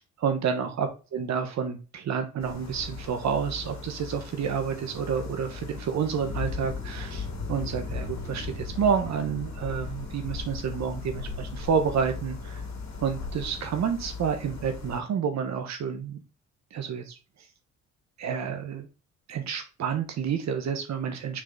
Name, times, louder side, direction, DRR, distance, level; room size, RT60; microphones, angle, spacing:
voice 1, 0.0-12.6 13.0-16.2 16.7-17.2 18.2-18.9 19.3-21.4, right 7 dB, 65° right, 7 dB, 1.1 m, -29 dB
sound 1, 2.4-15.0, left 4 dB, 65° left, 2.6 m, -37 dB
6.2 x 3.9 x 4.0 m, 0.32 s
cardioid pair, 90°, 30 cm